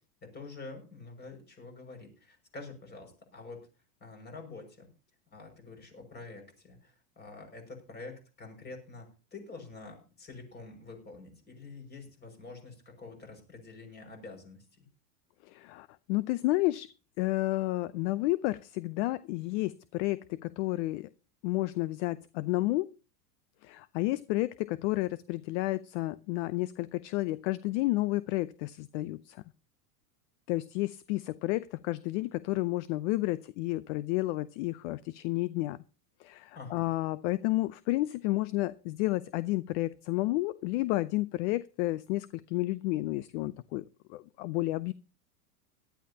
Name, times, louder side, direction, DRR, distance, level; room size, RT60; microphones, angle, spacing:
voice 1, 0.2-3.6 4.0-4.9 5.3-14.9 36.5-36.9, left 3 dB, 20° left, 4 dB, 6.0 m, -47 dB
voice 2, 15.4-16.9 17.2-21.1 21.4-22.9 23.6-29.4 30.5-35.8 36.2-44.9, left 19 dB, 50° left, 17 dB, 0.6 m, -31 dB
18.0 x 12.5 x 2.9 m, 0.33 s
supercardioid pair, 130°, 46 cm